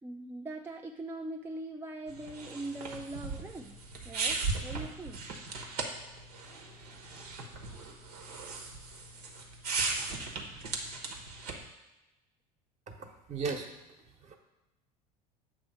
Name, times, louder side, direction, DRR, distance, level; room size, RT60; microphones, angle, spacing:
voice 1, 0.0-3.8 4.0-5.2, right 2 dB, 10° right, 2 dB, 0.4 m, -41 dB
sound 1, 2.1-11.7, right 4 dB, 80° right, 1.1 m, -38 dB
voice 2, 13.3-13.7 14.2-14.4, right 4 dB, 35° right, 3 dB, 1.1 m, -35 dB
7.5 x 3.1 x 5.6 m, 1.0 s
hypercardioid pair, 85°, 19 cm